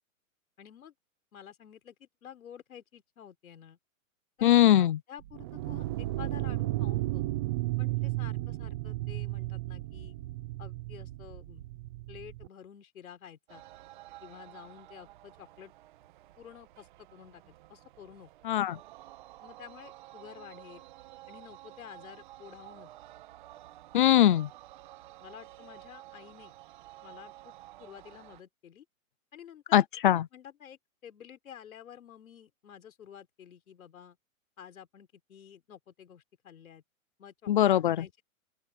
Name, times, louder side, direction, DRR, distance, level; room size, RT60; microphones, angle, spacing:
voice 1, 0.6-0.9 1.3-3.8 4.4-7.3 7.8-10.2 10.6-11.6 12.1-13.6 14.2-15.7 16.4-18.3 19.4-20.9 21.3-22.9 25.2-26.5 27.0-27.5 27.8-28.9 29.3-29.9 30.3-34.2 34.6-36.8 37.2-38.2, left 9 dB, 80° left, 5.2 m, -50 dB
voice 2, 4.4-5.0 18.5-18.8 23.9-24.5 29.7-30.2 37.5-38.0, left 12 dB, 40° left, 0.5 m, -22 dB
sound 1, 5.2-12.5, right 17 dB, 20° right, 0.6 m, -34 dB
sound 2, 13.5-28.4, right 16 dB, 35° right, 1.6 m, -52 dB
open air
hypercardioid pair, 170°, 41 cm